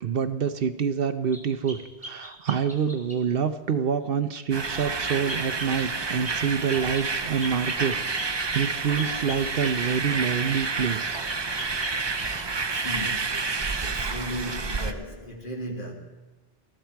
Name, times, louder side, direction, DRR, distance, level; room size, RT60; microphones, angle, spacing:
voice 1, 0.0-11.2, right 7 dB, 60° right, 0.9 m, -27 dB
sound 1, 1.3-3.2 5.3-5.8 6.2-6.4 6.7-7.1 7.4-10.7 11.3-12.5 12.7-13.1, left 1 dB, 10° left, 3.8 m, -40 dB
sound 2, 4.5-14.9, right 4 dB, 30° right, 0.6 m, -29 dB
voice 2, 12.7-15.9, left 1 dB, 50° left, 2.3 m, -36 dB
20.0 x 13.5 x 4.6 m
omnidirectional pair, 1.1 m